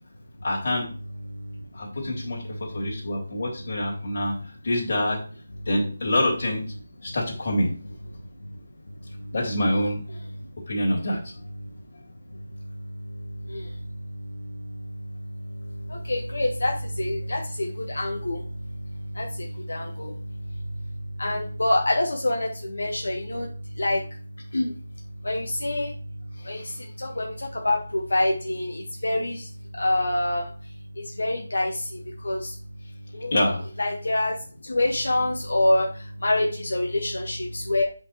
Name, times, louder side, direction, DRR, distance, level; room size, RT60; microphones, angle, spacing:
voice 1, 0.4-0.9 1.7-4.3 4.6-5.2 5.6-6.6 7.0-7.7 9.3-10.0 10.7-11.2 26.4-26.8 33.3-33.6, left 1 dB, 50° left, -2 dB, 3.2 m, -26 dB
voice 2, 1.3-1.6 2.5-2.9 8.1-8.6 8.9-9.3 10.3-10.5 11.6-11.7 12.3-32.6 33.1-33.3 33.8-37.8, left 1 dB, 70° left, 1 dB, 1.4 m, -28 dB
8.0 x 5.3 x 4.6 m, 0.41 s
figure-of-eight pair, 155°, 0 cm